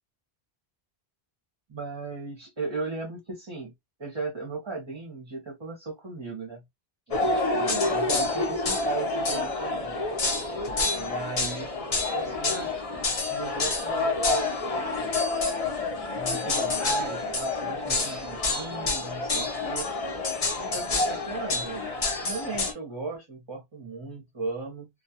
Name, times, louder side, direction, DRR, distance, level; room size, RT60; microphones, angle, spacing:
voice 1, 1.7-3.7 4.0-6.6 7.1-10.0 10.9-11.7 12.1-12.7 13.3-15.1 16.1-19.9 20.6-21.9 22.2-24.9, right 3 dB, 30° right, 0.6 m, -37 dB
sound 1, 7.1-22.7, left 3 dB, 40° left, 0.6 m, -28 dB
2.2 x 2.2 x 2.7 m
omnidirectional pair, 1.1 m